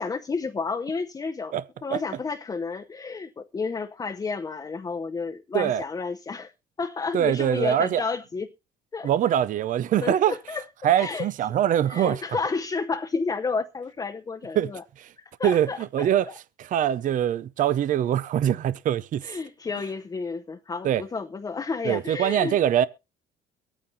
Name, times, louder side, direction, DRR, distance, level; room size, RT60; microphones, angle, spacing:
voice 1, 0.0-1.5 1.8-6.5 6.8-8.5 8.9-9.3 10.0-10.6 11.0-11.3 11.8-14.8 15.4-16.1 19.2-22.6, left 4 dB, 20° left, 0.7 m, -31 dB
voice 2, 7.1-8.0 9.0-10.4 10.8-12.2 14.6-14.7 15.0-15.1 15.4-16.3 16.6-19.4 20.8-21.0 21.8-22.9, right 10 dB, 50° right, 0.6 m, -23 dB
23.0 x 9.0 x 2.8 m
cardioid pair, 110°, 17 cm